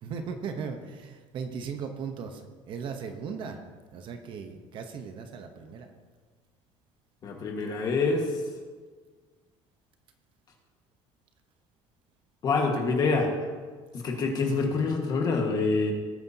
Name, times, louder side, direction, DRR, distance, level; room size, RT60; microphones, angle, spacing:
voice 1, 0.0-3.6 3.9-5.9 14.4-14.8, right 6 dB, 40° right, 6 dB, 0.9 m, -37 dB
voice 2, 7.2-8.4 12.4-13.5 13.9-15.9, left 3 dB, 30° left, 2 dB, 1.6 m, -26 dB
18.5 x 9.3 x 2.8 m, 1.5 s
cardioid pair, 180°, 13 cm